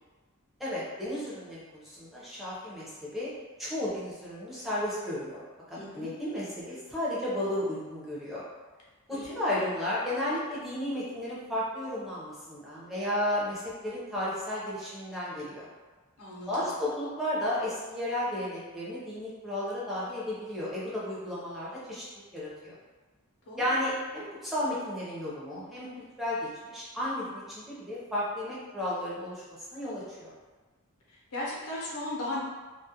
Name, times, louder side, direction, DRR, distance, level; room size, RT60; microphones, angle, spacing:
voice 1, 0.6-3.3 3.6-5.4 5.7-8.4 9.1-15.6 16.5-22.0 22.3-22.7 23.6-25.9 26.2-29.4 29.7-30.3, left 1 dB, ahead, -9 dB, 0.7 m, -33 dB
voice 2, 5.8-6.1 9.1-9.6 16.2-16.7 23.5-23.8 31.3-32.4, left 1 dB, 80° left, -5 dB, 0.7 m, -37 dB
2.3 x 2.1 x 2.8 m, 1.3 s
head